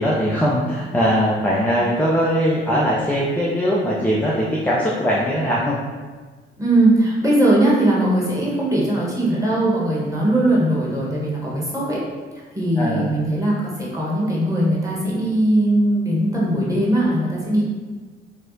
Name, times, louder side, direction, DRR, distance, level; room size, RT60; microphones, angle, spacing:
voice 1, 0.0-5.8 12.8-13.1, equal, 5° left, -5 dB, 0.5 m, -20 dB
voice 2, 6.6-12.0 12.5-17.6, right 1 dB, 10° right, -6 dB, 1.2 m, -19 dB
4.5 x 2.0 x 2.7 m, 1.4 s
figure-of-eight pair, 45°, 30 cm